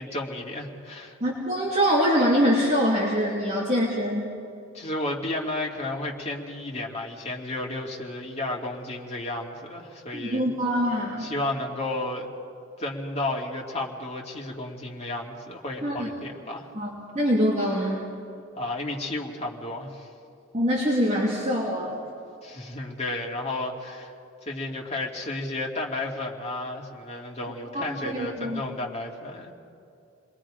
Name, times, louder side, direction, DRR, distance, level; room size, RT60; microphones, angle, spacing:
voice 1, 0.0-1.2 4.7-10.5 11.2-12.3 12.8-16.7 18.6-20.1 22.4-24.1 24.4-29.5, left 2 dB, 35° left, -1 dB, 2.5 m, -32 dB
voice 2, 1.2-4.3 10.1-11.3 15.8-16.1 16.7-16.9 17.1-18.1 20.5-22.0 27.7-28.6, equal, 35° right, -6 dB, 3.0 m, -24 dB
29.5 x 21.5 x 5.1 m, 2.6 s
head